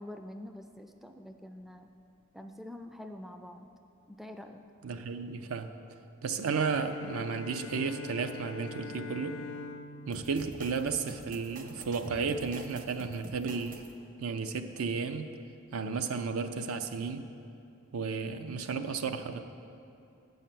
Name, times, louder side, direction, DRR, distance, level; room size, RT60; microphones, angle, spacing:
voice 1, 0.0-1.9 2.3-3.7 4.1-4.6, left 1 dB, ahead, 6 dB, 0.3 m, -46 dB
voice 2, 4.8-5.7 6.2-9.4 10.1-13.8 14.2-15.3 15.7-17.3 17.9-19.4, right 5 dB, 85° right, 8 dB, 0.5 m, -33 dB
Bowed string instrument, 6.7-11.6, left 4 dB, 70° left, 0.4 m, -44 dB
sound 1, 10.1-13.9, right 2 dB, 40° right, 0.7 m, -47 dB
7.6 x 5.6 x 7.5 m, 2.6 s
head